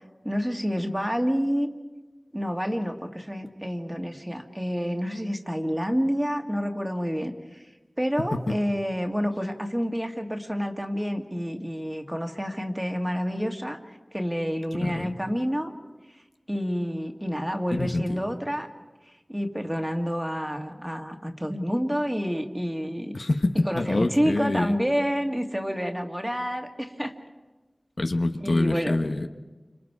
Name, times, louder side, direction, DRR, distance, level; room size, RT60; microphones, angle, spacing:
voice 1, 0.2-1.7 2.3-7.6 8.0-15.7 16.5-18.7 19.3-23.2 23.5-27.1 28.4-29.0, equal, 10° right, 4 dB, 2.0 m, -28 dB
voice 2, 14.8-15.2 17.7-18.2 23.1-24.7 28.0-29.3, left 2 dB, 75° left, 5 dB, 1.2 m, -26 dB
28.5 x 26.0 x 4.8 m, 1.2 s
wide cardioid pair, 45°, 0 cm